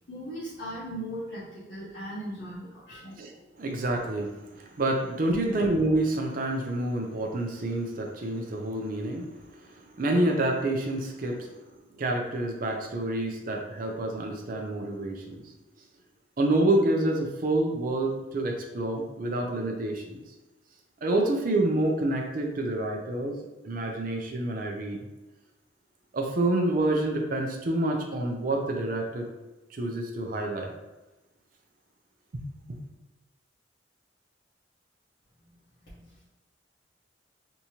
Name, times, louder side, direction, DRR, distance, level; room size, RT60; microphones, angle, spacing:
voice 1, 0.1-3.2 5.3-5.5 35.8-36.1, equal, 85° left, -11 dB, 1.1 m, -38 dB
voice 2, 3.6-9.3 9.7-11.6 12.0-15.4 16.4-20.2 21.0-25.0 26.1-29.3 29.7-30.7 32.3-32.4 32.7-32.8, right 1 dB, 50° right, 2 dB, 0.5 m, -28 dB
3.5 x 2.8 x 2.9 m, 1.1 s
head